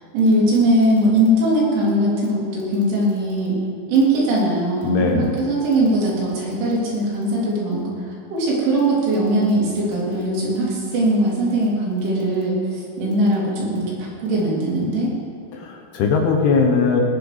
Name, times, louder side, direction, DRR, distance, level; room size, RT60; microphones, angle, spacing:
voice 1, 0.1-3.6 3.9-7.9 8.3-13.9 14.2-15.1, right 1 dB, 75° right, -5 dB, 5.4 m, -20 dB
voice 2, 4.8-5.4 15.5-17.0, left 4 dB, 70° left, 2 dB, 2.7 m, -19 dB
18.5 x 8.9 x 4.9 m, 2.7 s
omnidirectional pair, 5.6 m